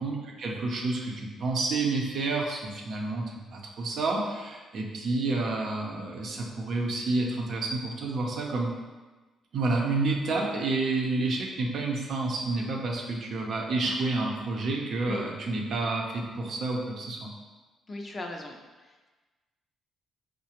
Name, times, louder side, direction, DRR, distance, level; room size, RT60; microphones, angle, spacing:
voice 1, 0.0-8.7 9.5-17.3, right 3 dB, 65° right, 0 dB, 0.6 m, -29 dB
voice 2, 17.9-19.1, left 2 dB, 35° left, 2 dB, 0.5 m, -39 dB
4.7 x 2.1 x 2.9 m, 1.2 s
cardioid pair, 90°, 0 cm